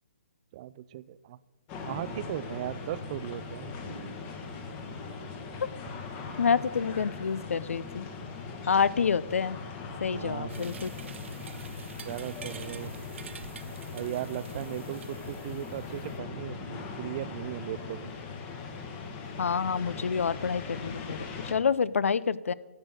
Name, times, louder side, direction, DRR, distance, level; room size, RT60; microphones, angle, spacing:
voice 1, 0.5-1.4 1.8-4.0 10.1-10.8 12.0-12.9 13.9-18.1, right 13 dB, 30° right, 17 dB, 0.3 m, -37 dB
sound 1, 1.7-21.5, left 4 dB, 25° left, 1.2 m, -40 dB
voice 2, 6.4-8.1 8.7-9.6 10.0-10.9 19.4-22.5, left 6 dB, 75° left, 19 dB, 0.5 m, -28 dB
sound 2, 10.5-16.2, right 7 dB, 60° right, 0.7 m, -48 dB
10.5 x 8.1 x 6.3 m, 1.1 s
hypercardioid pair, 150°, 7 cm